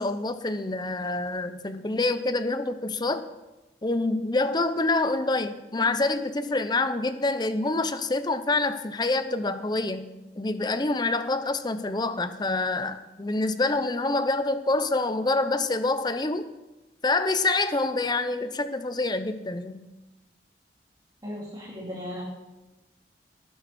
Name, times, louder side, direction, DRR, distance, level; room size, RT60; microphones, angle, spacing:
voice 1, 0.0-3.2 3.8-16.5 17.0-19.8, left 2 dB, 25° left, 11 dB, 0.7 m, -26 dB
voice 2, 21.2-22.2, left 1 dB, 25° right, -5 dB, 2.5 m, -36 dB
18.5 x 9.4 x 4.3 m, 1.0 s
head